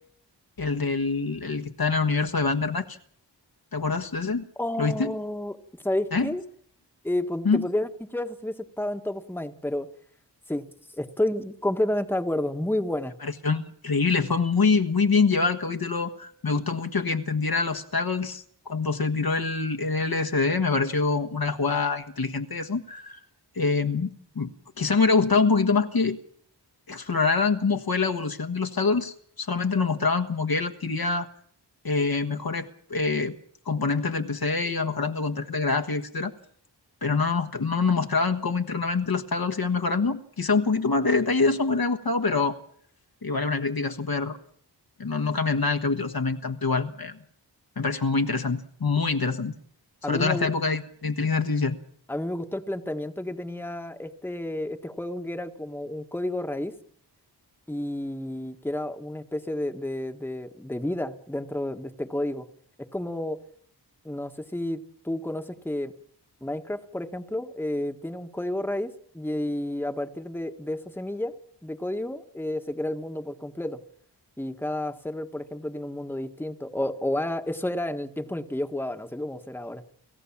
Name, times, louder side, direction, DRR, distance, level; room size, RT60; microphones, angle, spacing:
voice 1, 0.6-3.0 3.7-4.5 4.8-5.1 6.1-6.3 7.4-7.6 13.2-23.2 23.5-26.2 26.9-31.3 31.8-33.4 33.6-36.3 37.0-42.6 43.2-44.4 45.0-47.2 47.8-49.5 50.0-51.8, left 4 dB, 55° left, 7 dB, 1.4 m, -25 dB
voice 2, 4.6-5.6 5.8-6.4 7.0-9.9 10.5-10.7 11.0-13.1 50.0-50.5 52.1-56.7 57.7-62.5 62.9-63.4 64.0-65.9 66.4-71.3 71.6-73.8 74.4-79.8, left 1 dB, 5° left, 6 dB, 1.4 m, -31 dB
29.0 x 15.0 x 7.3 m, 0.64 s
wide cardioid pair, 85°, 42 cm